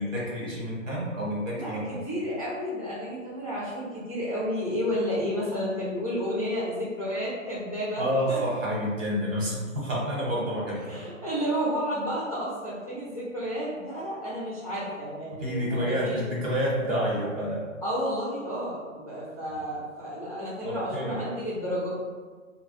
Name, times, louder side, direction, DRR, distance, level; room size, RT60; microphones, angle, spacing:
voice 1, 0.0-2.0 8.0-11.0 15.4-17.6 20.6-21.2, equal, 70° right, -5 dB, 1.3 m, -29 dB
voice 2, 1.5-8.4 10.9-16.3 17.8-21.9, equal, 30° left, -8 dB, 0.4 m, -31 dB
2.3 x 2.1 x 3.8 m, 1.4 s
hypercardioid pair, 170°, 41 cm